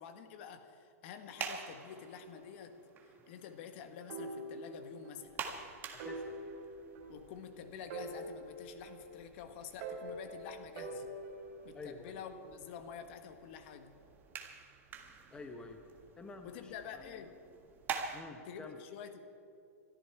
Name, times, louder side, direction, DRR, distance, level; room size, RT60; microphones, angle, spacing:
voice 1, 0.0-2.8 3.0-5.4 7.1-11.2 11.6-14.0 16.4-17.4 18.4-19.2, left 7 dB, 50° left, 8 dB, 1.5 m, -48 dB
sound 1, 1.1-18.2, right 6 dB, 20° right, 1.7 m, -48 dB
sound 2, 4.1-5.3 5.6-5.7 6.0-7.5 7.9-9.4 9.8-11.6, right 2 dB, 40° right, 3.1 m, -44 dB
voice 2, 5.9-6.3 11.7-12.1 15.3-15.8 16.2-17.2 18.1-18.8, left 3 dB, 10° left, 5 dB, 1.0 m, -49 dB
22.0 x 13.5 x 4.7 m, 2.7 s
hypercardioid pair, 145°, 8 cm